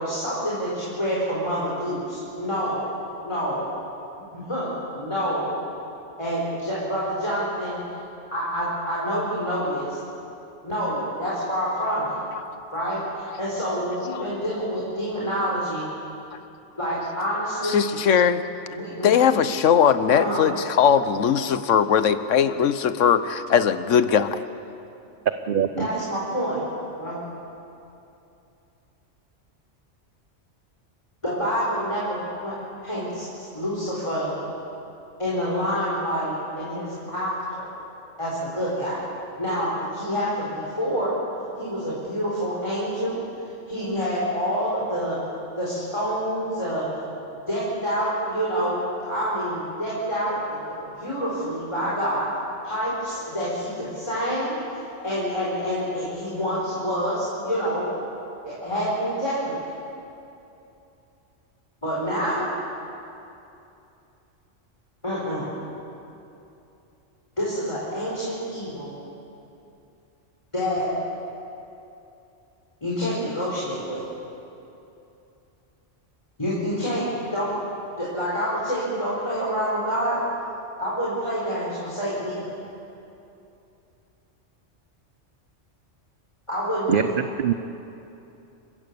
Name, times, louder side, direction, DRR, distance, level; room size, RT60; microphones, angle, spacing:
voice 1, 0.0-2.9 3.2-3.6 4.3-5.5 6.2-7.8 8.3-10.0 10.6-12.1 12.7-15.9 16.8-17.8 18.7-19.2 20.1-20.4 25.8-26.6 27.0-27.2 31.2-32.5 32.8-34.3 35.2-37.7 38.2-39.0 39.4-41.2 41.6-43.2 43.7-45.2 45.6-47.0 47.5-50.6 50.9-52.3 52.6-54.8 55.0-57.9 58.4-59.6 61.8-62.5 65.0-65.5 67.4-69.0 70.5-70.9 72.8-74.1 76.4-77.6 78.0-80.2 80.8-82.5 86.5-87.1, equal, 25° left, -7 dB, 4.6 m, -27 dB
voice 2, 17.6-18.4 19.0-24.4, left 8 dB, 85° left, 12 dB, 1.2 m, -20 dB
voice 3, 25.5-25.9 86.9-87.1 87.4-87.5, right 8 dB, 55° right, 9 dB, 0.8 m, -22 dB
29.5 x 16.0 x 7.0 m, 2.8 s
omnidirectional pair, 1.2 m